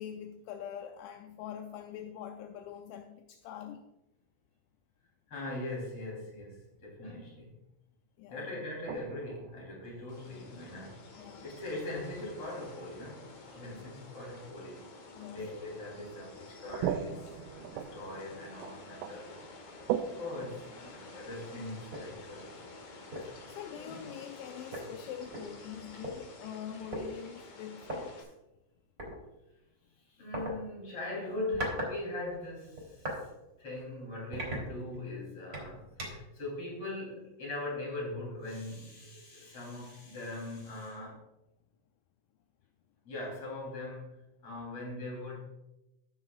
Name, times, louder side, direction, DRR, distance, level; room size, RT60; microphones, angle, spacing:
voice 1, 0.0-3.8 8.2-8.6 11.2-11.5 15.2-15.5 23.2-28.3, left 9 dB, 85° left, 5 dB, 2.6 m, -44 dB
voice 2, 5.3-7.6 8.3-11.1 11.4-13.2 13.5-19.3 20.2-22.6 23.7-24.0 30.0-33.3 33.6-41.2 43.0-45.4, left 2 dB, 30° left, -4 dB, 3.7 m, -41 dB
sound 1, 8.9-10.8 11.2-11.3 13.2-13.3 14.0-14.1 15.7-15.8 16.4-21.4, right 10 dB, 85° right, 3.1 m, -39 dB
sound 2, 10.1-28.2, left 3 dB, 65° left, 1.8 m, -50 dB
sound 3, 21.9-22.1 22.6-22.7 23.1-23.4 24.4-24.5 24.7-26.1 26.9-27.1 27.8-28.0 29.0-29.2 30.3-30.5 31.3-31.9 32.3-33.2 33.7-33.8 34.3-35.1 35.5-36.3, equal, 25° right, 2.3 m, -38 dB
17.5 x 7.2 x 2.4 m, 0.94 s
omnidirectional pair, 5.7 m